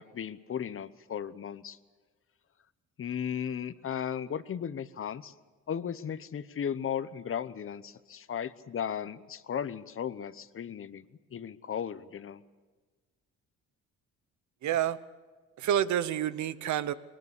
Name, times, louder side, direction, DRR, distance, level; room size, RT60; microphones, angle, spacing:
voice 1, 0.0-1.8 3.0-5.3 5.7-11.0 11.3-12.4, left 8 dB, 45° left, 15 dB, 1.0 m, -36 dB
voice 2, 14.6-15.0 15.6-16.9, right 10 dB, 70° right, 15 dB, 0.9 m, -28 dB
21.5 x 19.5 x 8.3 m, 1.3 s
cardioid pair, 90°, 30 cm